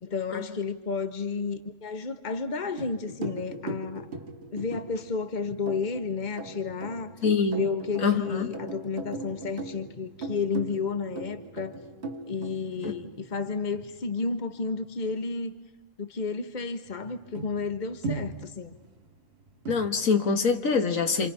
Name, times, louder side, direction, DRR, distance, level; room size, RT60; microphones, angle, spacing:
voice 1, 0.0-4.1 4.5-7.2 7.5-11.8 12.3-15.5 16.0-18.8, left 4 dB, 35° left, 9 dB, 1.4 m, -32 dB
sound 1, 2.8-14.0 16.9-17.0 17.3-19.1 19.6-20.0, right 3 dB, 55° right, 2.1 m, -39 dB
voice 2, 7.2-7.6 8.0-8.5 12.8-12.9 19.7-21.3, left 5 dB, 85° left, 7 dB, 2.0 m, -24 dB
28.0 x 28.0 x 5.6 m, 1.0 s
omnidirectional pair, 1.4 m